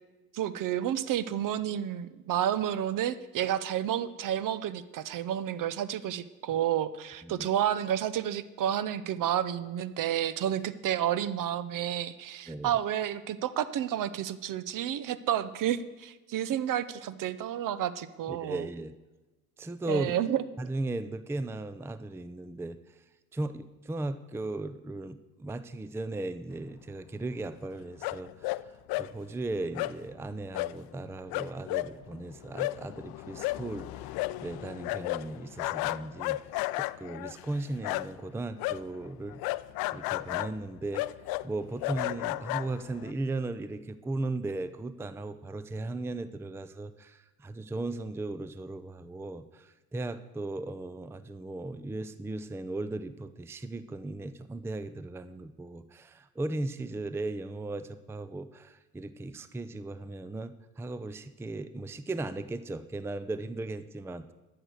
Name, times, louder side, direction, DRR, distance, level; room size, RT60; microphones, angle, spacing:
voice 1, 0.3-18.6 19.9-20.4, right 10 dB, 45° right, 16 dB, 0.8 m, -30 dB
voice 2, 12.5-12.8 18.3-18.9 19.6-20.1 20.6-22.8 23.3-28.6 29.0-34.2 34.4-36.4 36.7-39.4 39.9-41.1 41.4-64.3, right 2 dB, 5° right, 13 dB, 0.5 m, -37 dB
sound 1, 28.0-28.6 28.9-29.1 29.8-29.9 30.5-30.7 31.0-31.1 31.3-38.3 38.6-43.1, left 19 dB, 55° left, 0.5 m, -33 dB
12.0 x 6.8 x 7.9 m, 1.1 s
hypercardioid pair, 65°, 43 cm